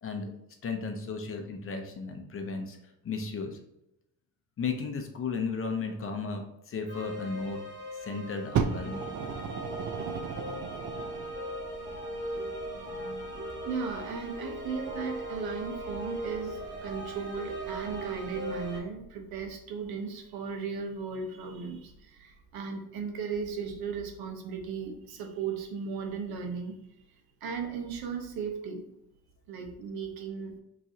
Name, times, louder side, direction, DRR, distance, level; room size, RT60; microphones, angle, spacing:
voice 1, 0.6-2.8 3.0-3.6 4.6-7.6 8.0-9.2 12.4-13.3, left 4 dB, 35° left, 5 dB, 0.7 m, -35 dB
sound 1, 6.9-18.8, right 1 dB, 30° right, 1.2 m, -38 dB
Fire, 8.5-11.4 12.2-12.3, right 6 dB, 50° right, 0.5 m, -33 dB
voice 2, 13.6-26.7 27.1-28.8 29.5-30.5, right 5 dB, 75° right, 3 dB, 1.1 m, -36 dB
6.1 x 3.1 x 2.8 m, 0.84 s
cardioid pair, 140°, 37 cm